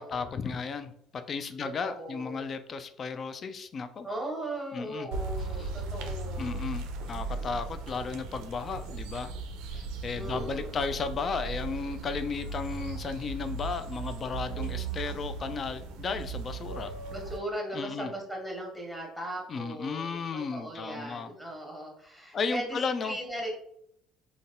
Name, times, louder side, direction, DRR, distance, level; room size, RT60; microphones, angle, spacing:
voice 1, 0.0-4.1 4.7-5.1 5.6-5.7 6.4-9.3 9.7-16.9 17.7-18.1 19.5-21.3 22.3-23.2, left 5 dB, 45° left, 10 dB, 0.3 m, -34 dB
sound 1, 0.5-0.9 10.2-11.6 12.0-13.7 14.2-15.8 16.1-16.2 16.6-17.5, left 2 dB, 85° left, 0.6 m, -50 dB
voice 2, 1.6-2.4 4.0-6.6 7.4-7.5 10.1-10.8 17.1-23.5, right 1 dB, ahead, -1 dB, 1.3 m, -38 dB
sound 2, 5.1-17.4, right 4 dB, 75° right, 0.4 m, -37 dB
3.8 x 2.2 x 2.5 m, 0.70 s
hypercardioid pair, 60°, 0 cm